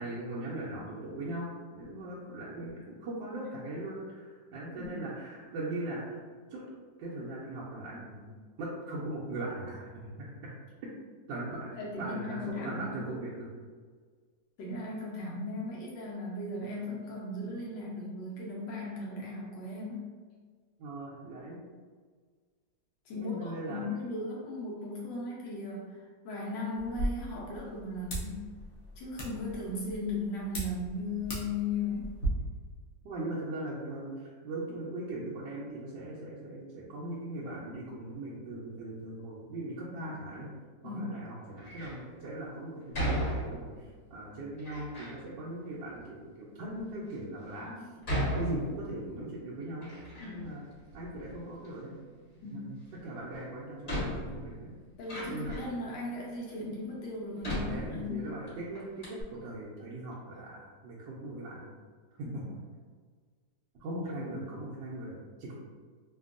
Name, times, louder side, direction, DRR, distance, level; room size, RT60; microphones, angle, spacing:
voice 1, 0.0-6.2 6.5-6.6 7.0-8.3 8.6-10.5 11.3-11.7 12.0-13.5 20.8-21.6 23.1-23.8 33.0-40.5 40.8-47.7 48.1-49.9 50.2-50.6 50.9-52.0 52.4-52.7 53.0-54.7 55.3-55.6 57.6-61.7 62.2-62.4 63.8-65.5, right 1 dB, 80° right, -8 dB, 1.3 m, -39 dB
voice 2, 11.8-13.0 14.6-20.0 23.1-28.5 29.0-32.2 40.8-41.2 47.6-47.9 50.2-50.4 52.4-52.7 55.0-58.2 62.2-62.5, left 2 dB, 80° left, -4 dB, 1.3 m, -37 dB
sound 1, 26.8-32.3, right 1 dB, 60° left, 0.8 m, -39 dB
Door, 41.6-42.0 42.9-43.9 44.6-45.2 46.0-46.1 46.8-46.9 48.0-49.2 49.5-50.6 50.9-51.7 53.1-53.2 53.8-55.8 56.5-56.6 57.4-58.5 58.7-58.8 59.0-59.2, equal, 30° left, 1.5 m, -36 dB
3.4 x 2.2 x 2.4 m, 1.6 s
omnidirectional pair, 2.0 m